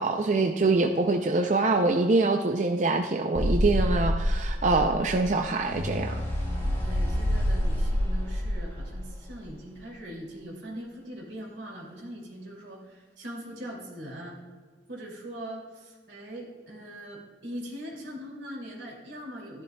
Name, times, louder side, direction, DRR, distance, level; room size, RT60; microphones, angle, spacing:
voice 1, 0.0-6.2, right 3 dB, 40° right, 4 dB, 0.5 m, -24 dB
sound 1, 3.3-9.4, equal, 15° left, 2.5 m, -27 dB
voice 2, 6.8-14.4 14.9-19.6, equal, 80° right, -2 dB, 2.6 m, -41 dB
13.5 x 11.0 x 2.3 m, 1.5 s
head